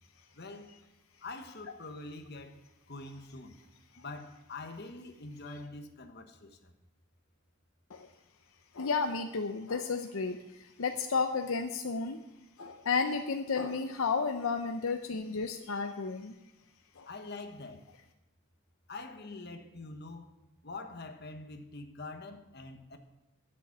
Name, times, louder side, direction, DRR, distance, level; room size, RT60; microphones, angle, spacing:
voice 1, 0.3-0.8 1.2-3.6 4.0-6.7 17.1-17.8 18.9-20.3 20.6-23.0, left 3 dB, 50° left, 1.2 m, -45 dB
voice 2, 8.7-12.2 12.6-16.3 17.0-17.1, left 4 dB, 70° left, 0.7 m, -32 dB
11.0 x 7.0 x 8.5 m
head